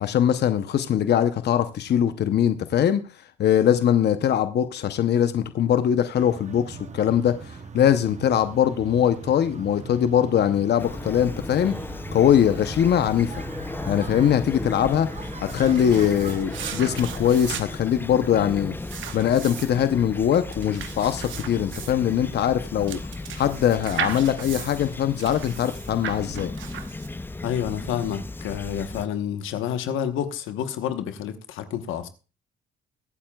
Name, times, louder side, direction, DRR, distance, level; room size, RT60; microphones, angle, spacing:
voice 1, 0.0-3.0 3.4-11.8 12.1-13.3 13.9-15.1 15.5-18.7 19.1-23.0 23.4-26.5, left 9 dB, 60° left, 0.7 m, -22 dB
sound 1, 6.1-17.1, right 5 dB, 35° right, 0.9 m, -41 dB
Fowl / Chirp tweet, 10.8-29.1, left 2 dB, 10° left, 0.5 m, -36 dB
sound 2, 15.2-27.4, right 9 dB, 75° right, 1.0 m, -37 dB
voice 2, 27.4-32.1, left 9 dB, 90° left, 1.1 m, -29 dB
22.5 x 8.7 x 2.3 m
cardioid pair, 90°, 20 cm